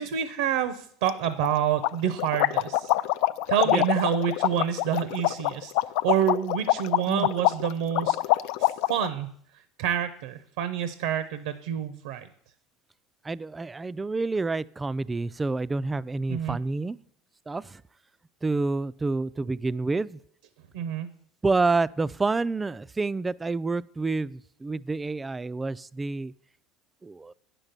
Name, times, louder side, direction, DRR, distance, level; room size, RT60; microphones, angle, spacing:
voice 1, 0.0-2.9 3.5-5.7 6.0-8.2 8.6-9.3 9.8-12.3 16.3-16.6 20.7-21.1, right 9 dB, 80° right, 12 dB, 0.7 m, -27 dB
sound 1, 1.1-1.2 1.4-1.5 1.8-9.1, left 16 dB, 70° left, 0.3 m, -25 dB
voice 2, 13.2-17.0 17.5-17.8 18.4-20.2 21.4-26.3 27.0-27.3, right 3 dB, 15° right, 19 dB, 0.3 m, -28 dB
9.0 x 6.0 x 6.6 m, 0.65 s
supercardioid pair, 100°, 0 cm